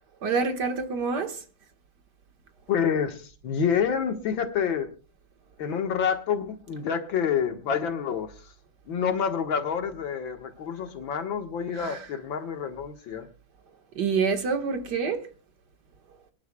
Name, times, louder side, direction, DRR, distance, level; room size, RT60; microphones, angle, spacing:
voice 1, 0.2-1.4 11.7-12.1 14.0-15.2, right 5 dB, 65° right, 2.1 m, -27 dB
voice 2, 2.7-4.9 5.6-8.3 8.9-13.3, left 7 dB, 90° left, 2.2 m, -28 dB
24.0 x 11.5 x 2.2 m
omnidirectional pair, 2.1 m